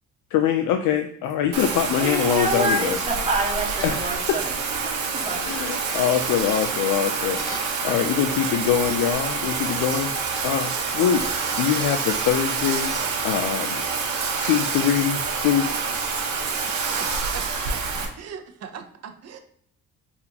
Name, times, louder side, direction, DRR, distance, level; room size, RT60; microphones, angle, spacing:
voice 1, 0.3-3.0 3.8-4.2 5.3-11.2 11.5-12.9 13.2-13.8 14.4-15.7, left 9 dB, 90° left, 6 dB, 0.5 m, -24 dB
sound 1, 1.2-1.3 1.6-1.7 2.4-2.5 2.6-3.0 3.4-4.1 5.2-5.3 5.6-5.8 6.4-6.9 7.4-7.8, equal, 10° left, 1.1 m, -41 dB
Bathtub (filling or washing), 1.5-18.1, right 5 dB, 70° right, 1.1 m, -27 dB
voice 2, 2.0-4.6 4.8-4.9 5.2-5.4, right 1 dB, 20° right, 0 dB, 1.2 m, -27 dB
voice 3, 16.6-17.8 18.2-19.4, right 7 dB, 55° right, 7 dB, 0.7 m, -40 dB
4.1 x 3.6 x 2.8 m, 0.68 s
cardioid pair, 90°, 30 cm